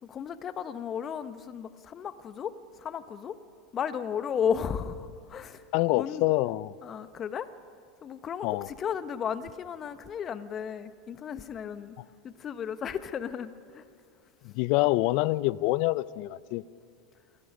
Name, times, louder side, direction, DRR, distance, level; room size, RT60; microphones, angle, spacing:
voice 1, 0.0-3.4 3.7-5.6 5.9-6.2 6.8-7.5 8.0-12.0 12.2-13.8, left 7 dB, 35° left, 13 dB, 1.0 m, -34 dB
voice 2, 5.7-6.7 8.4-8.7 14.4-16.6, left 19 dB, 55° left, 20 dB, 0.5 m, -26 dB
28.0 x 17.5 x 5.3 m, 2.4 s
hypercardioid pair, 95°, 0 cm